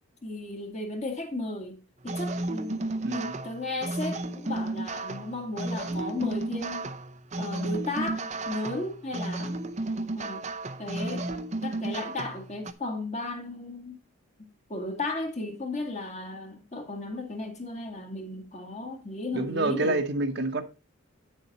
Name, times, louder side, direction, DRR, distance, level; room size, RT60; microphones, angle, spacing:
voice 1, 0.2-1.8 2.0-6.9 7.4-9.6 10.1-10.5 10.8-11.3 11.6-14.0 14.7-20.0, left 2 dB, 30° left, 1.8 m, -35 dB
sound 1, 2.1-12.7, right 2 dB, 35° right, 0.6 m, -33 dB
voice 2, 3.0-3.4 19.3-20.6, right 2 dB, 50° right, 1.0 m, -27 dB
8.9 x 6.8 x 4.1 m
head